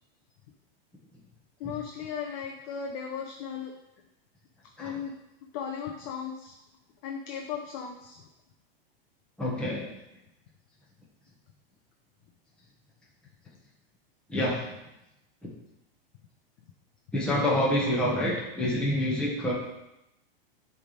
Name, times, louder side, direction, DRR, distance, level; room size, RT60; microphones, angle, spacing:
voice 1, 1.6-3.7 4.8-5.1 5.5-6.6 7.0-8.2, left 7 dB, 40° left, 1 dB, 0.7 m, -36 dB
voice 2, 9.4-9.9 14.3-14.6 17.1-19.5, left 1 dB, 5° left, -6 dB, 1.2 m, -27 dB
8.2 x 3.5 x 4.1 m, 0.89 s
supercardioid pair, 155°, 29 cm